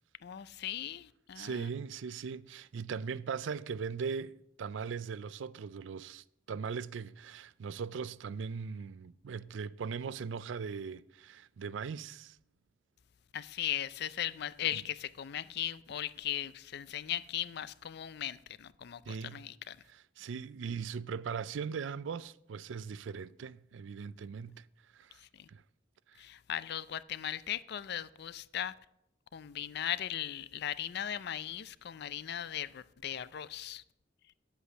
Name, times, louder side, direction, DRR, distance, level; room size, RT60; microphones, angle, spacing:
voice 1, 0.2-1.7 13.3-19.8 25.4-25.5 26.2-28.7 29.3-33.8, left 11 dB, 60° left, 0.4 m, -38 dB
voice 2, 1.4-12.4 14.7-14.8 19.1-19.4 19.9-24.7 24.9-25.2 25.5-25.6 26.1-26.2, right 6 dB, 75° right, 0.4 m, -39 dB
9.9 x 8.2 x 6.2 m
head